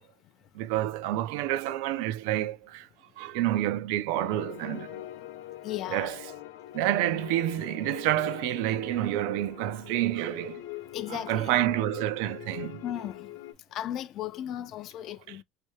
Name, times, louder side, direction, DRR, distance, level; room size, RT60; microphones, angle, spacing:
voice 1, 0.5-2.9 3.2-4.9 5.9-6.1 6.7-10.6 11.1-12.8, right 14 dB, 70° right, 0.4 m, -28 dB
sound 1, 4.1-13.5, left 14 dB, 80° left, 0.8 m, -43 dB
voice 2, 5.6-6.1 10.9-11.6 12.8-13.3 13.7-15.4, left 12 dB, 40° left, 0.4 m, -36 dB
3.2 x 2.7 x 3.0 m
cardioid pair, 155°, 0 cm